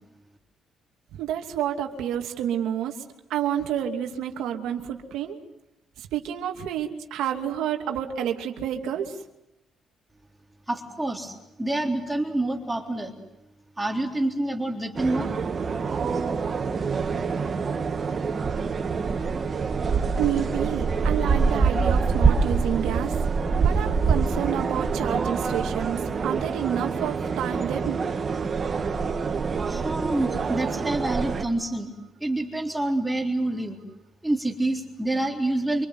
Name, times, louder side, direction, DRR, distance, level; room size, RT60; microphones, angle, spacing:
voice 1, 1.2-2.9 3.3-5.4 6.1-9.1 20.2-23.1 23.6-28.0, right 10 dB, 90° right, 4 dB, 2.7 m, -29 dB
voice 2, 10.7-13.2 13.8-15.3 29.7-31.9 32.2-33.8 34.2-35.9, right 2 dB, 10° right, 1 dB, 3.8 m, -27 dB
sound 1, 15.0-31.4, right 5 dB, 40° right, 2.9 m, -25 dB
26.5 x 24.0 x 8.0 m, 0.91 s
cardioid pair, 90°, 0 cm